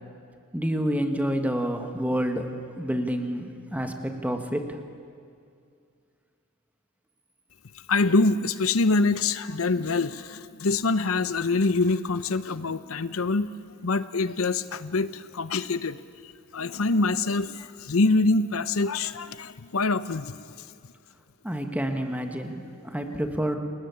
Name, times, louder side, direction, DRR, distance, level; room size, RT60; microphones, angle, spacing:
voice 1, 0.5-4.8 21.4-23.6, equal, 5° right, 5 dB, 1.9 m, -28 dB
voice 2, 7.9-13.5 13.8-16.0 16.2-20.5, left 3 dB, 70° left, 13 dB, 0.8 m, -25 dB
29.5 x 20.5 x 8.6 m, 2.3 s
head